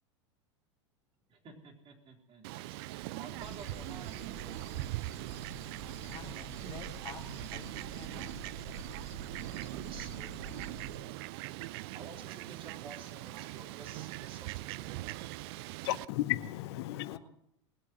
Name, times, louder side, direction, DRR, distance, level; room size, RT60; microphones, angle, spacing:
voice 1, 1.3-4.6 9.9-11.1 11.9-15.3, right 4 dB, 35° right, 4.1 m, -52 dB
Fowl, 2.4-16.1, right 18 dB, 55° right, 0.5 m, -41 dB
sound 1, 3.4-11.0, right 3 dB, 20° right, 3.6 m, -47 dB
voice 2, 6.1-8.8 17.0-17.2, left 7 dB, 30° left, 2.9 m, -50 dB
voice 3, 15.8-17.2, left 15 dB, 60° left, 0.9 m, -34 dB
20.5 x 8.4 x 8.0 m
hypercardioid pair, 90°, 16 cm